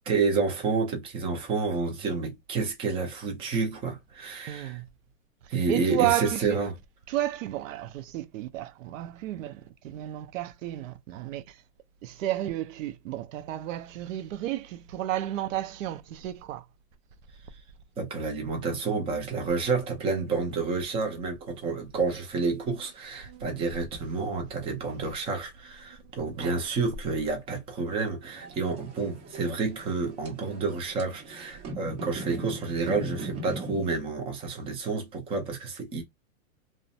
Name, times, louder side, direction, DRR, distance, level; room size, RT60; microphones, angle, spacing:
voice 1, 0.1-4.8 5.5-6.7 18.0-36.0, right 4 dB, 15° right, 0.4 m, -29 dB
voice 2, 4.5-4.8 5.7-6.6 7.1-11.6 12.0-16.6 23.3-23.4 26.4-26.6, right 14 dB, 65° right, 0.6 m, -32 dB
sound 1, 28.2-33.9, right 1 dB, 40° right, 1.3 m, -40 dB
2.5 x 2.1 x 2.5 m
hypercardioid pair, 140°, 42 cm